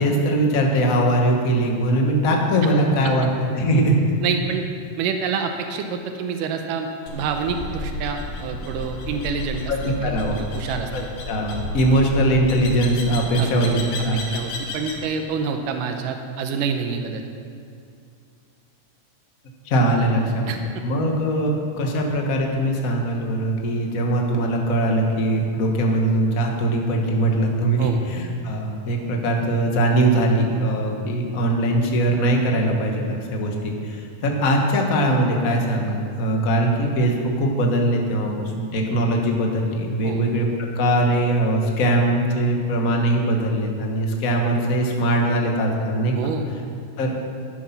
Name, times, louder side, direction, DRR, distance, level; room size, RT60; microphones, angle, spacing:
voice 1, 0.0-3.3 3.5-4.0 9.7-10.4 10.9-14.2 19.6-40.5 40.7-46.1 47.0-47.1, right 1 dB, 50° left, 1 dB, 1.0 m, -21 dB
voice 2, 4.2-4.6 5.0-6.9 7.1-11.1 13.4-13.8 14.3-17.2 20.5-20.8 27.8-28.0 40.0-40.2 46.2-46.5, right 6 dB, 90° right, 5 dB, 2.4 m, -27 dB
sound 1, 7.1-15.1, left 2 dB, 80° left, 3.0 m, -32 dB
11.5 x 10.0 x 5.8 m, 2.4 s
omnidirectional pair, 3.7 m